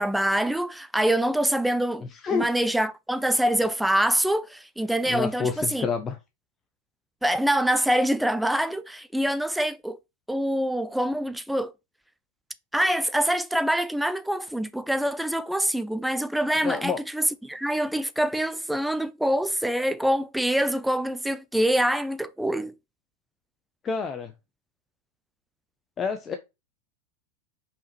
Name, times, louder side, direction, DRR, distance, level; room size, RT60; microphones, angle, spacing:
voice 1, 0.0-5.9 7.2-10.0 10.3-11.7 12.7-22.7, right 1 dB, 5° right, 0.7 m, -25 dB
voice 2, 2.0-2.5 5.1-6.2 16.6-17.0 23.8-24.3 26.0-26.3, left 5 dB, 25° left, 1.0 m, -28 dB
5.7 x 4.9 x 4.5 m
figure-of-eight pair, 90°, 0 cm